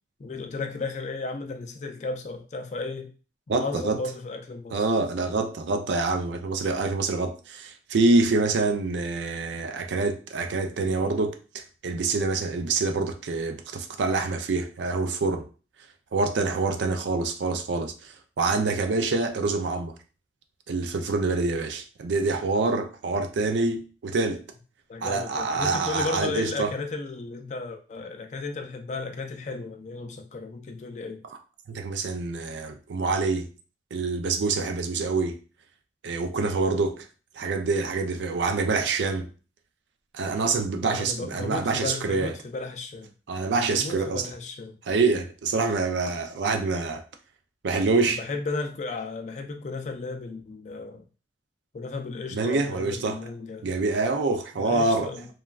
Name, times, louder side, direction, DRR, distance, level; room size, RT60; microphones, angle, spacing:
voice 1, 0.2-3.1 3.5-4.9 24.9-31.2 40.8-43.1 43.6-44.8 48.2-51.0 51.7-53.7 54.6-55.3, left 3 dB, 40° left, 0.3 m, -34 dB
voice 2, 3.5-4.0 4.7-11.4 11.8-15.5 16.1-19.9 20.7-24.4 25.0-26.7 31.7-33.5 33.9-35.4 36.0-37.1 37.4-39.3 40.1-42.3 43.3-44.3 44.9-47.0 47.6-48.2 52.3-53.2 53.6-55.1, right 3 dB, 80° right, 0.4 m, -26 dB
3.0 x 2.3 x 2.3 m
head